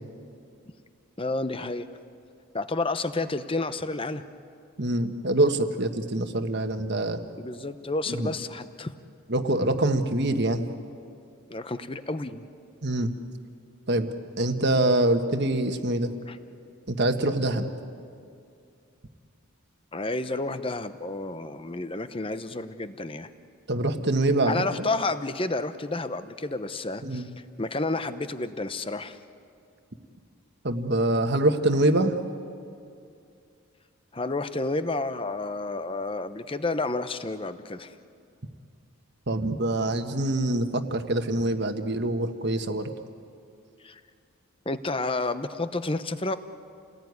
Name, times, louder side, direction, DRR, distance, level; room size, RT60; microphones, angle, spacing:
voice 1, 1.2-1.9 2.5-4.2 7.4-8.9 11.5-12.5 16.3-16.4 19.9-23.3 24.5-27.3 27.6-29.2 34.1-37.9 43.8-44.0 44.7-46.4, left 2 dB, 25° left, 11 dB, 0.8 m, -30 dB
voice 2, 4.8-7.2 8.1-8.3 9.3-10.6 12.8-13.1 13.9-14.1 14.4-16.1 16.9-17.7 23.7-24.6 27.0-27.3 30.6-32.2 39.3-42.9, right 1 dB, 50° right, 7 dB, 1.4 m, -25 dB
30.0 x 19.0 x 9.6 m, 2.4 s
head